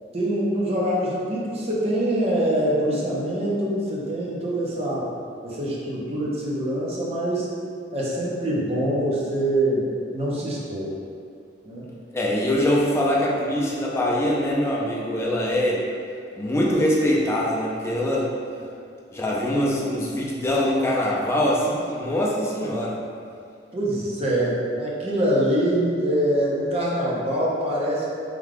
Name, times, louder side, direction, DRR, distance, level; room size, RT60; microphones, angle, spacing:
voice 1, 0.1-5.0 5.4-7.5 7.9-9.9 10.1-10.9 11.6-11.9 23.7-28.1, right 1 dB, 35° right, -5 dB, 0.6 m, -24 dB
voice 2, 12.1-15.8 16.4-18.3 19.1-23.0, left 1 dB, 15° left, -4 dB, 0.4 m, -23 dB
3.6 x 2.3 x 3.3 m, 2.4 s
head